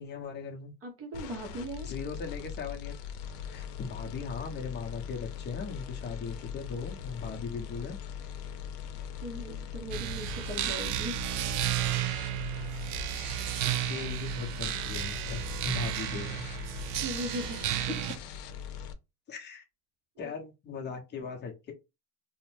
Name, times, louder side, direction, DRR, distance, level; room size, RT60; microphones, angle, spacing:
voice 1, 0.0-0.7 1.8-3.0 3.5-8.0 13.8-16.5 19.3-19.6 20.2-21.7, left 5 dB, 20° left, 0.6 m, -39 dB
voice 2, 0.8-1.9 9.2-11.2 17.0-17.6 17.9-18.1, equal, 30° right, 0.6 m, -38 dB
sound 1, 1.1-18.9, left 8 dB, 70° left, 0.6 m, -41 dB
sound 2, 9.9-18.2, right 13 dB, 70° right, 0.5 m, -33 dB
2.5 x 2.1 x 3.0 m
supercardioid pair, 120°, 50 cm